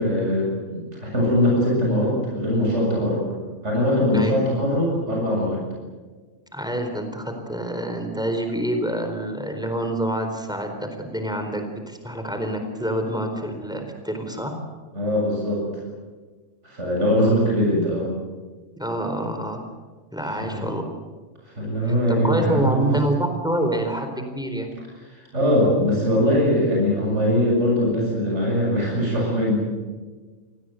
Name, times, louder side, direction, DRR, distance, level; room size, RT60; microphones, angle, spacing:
voice 1, 0.0-3.2 3.6-5.6 14.9-15.7 16.6-18.1 20.2-20.7 21.6-22.9 25.1-29.6, equal, 65° right, -3 dB, 7.8 m, -21 dB
voice 2, 6.5-14.6 18.8-19.6 20.1-20.8 22.1-24.7, right 1 dB, 5° right, 5 dB, 4.1 m, -27 dB
28.5 x 20.0 x 8.0 m, 1.4 s
omnidirectional pair, 1.3 m